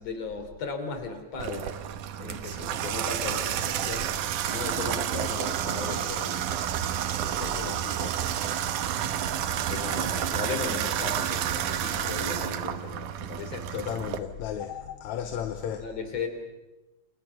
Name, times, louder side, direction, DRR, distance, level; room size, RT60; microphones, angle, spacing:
voice 1, 0.0-1.8 2.2-4.1 4.4-6.4 7.2-8.2 9.7-13.7 15.2-15.4 15.8-16.3, left 4 dB, 55° left, 4.3 m, -36 dB
Water tap faucet / Bathtub (filling or washing), 1.4-14.2, right 10 dB, 75° right, 2.6 m, -30 dB
voice 2, 13.7-15.8, left 9 dB, 70° left, 2.2 m, -33 dB
28.5 x 26.0 x 5.9 m
omnidirectional pair, 3.7 m